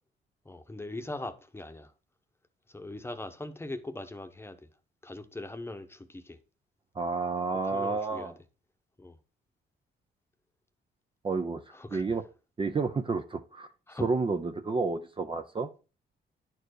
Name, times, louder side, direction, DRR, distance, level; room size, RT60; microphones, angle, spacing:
voice 1, 0.4-1.9 2.7-4.7 5.0-6.4 7.6-8.3 9.0-9.2 11.7-12.2 13.9-14.1, left 2 dB, 10° left, 1.0 m, -40 dB
voice 2, 6.9-8.3 11.2-11.6 11.9-12.2 12.6-13.7 14.0-15.7, right 4 dB, 25° right, 0.6 m, -30 dB
9.9 x 4.6 x 4.7 m
cardioid pair, 90°, 20 cm